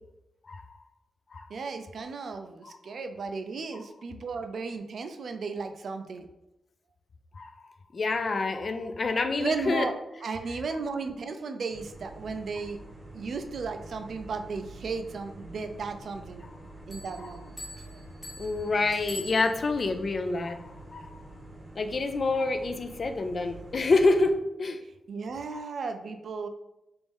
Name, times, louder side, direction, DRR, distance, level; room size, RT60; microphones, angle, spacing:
voice 1, 1.5-6.3 9.4-9.9 10.2-12.8 13.1-16.5 16.9-17.6 17.9-18.0 25.1-26.5, right 4 dB, 65° right, 7 dB, 0.3 m, -35 dB
voice 2, 7.9-9.9 18.4-20.6 20.9-21.1 21.8-24.8 25.5-25.6, left 3 dB, 45° left, 7 dB, 0.3 m, -27 dB
sound 1, 11.7-24.3, right 2 dB, 30° right, 0.8 m, -47 dB
sound 2, 16.9-19.9, left 2 dB, 10° left, 0.9 m, -45 dB
3.4 x 2.5 x 3.5 m, 0.90 s
wide cardioid pair, 110°, 0 cm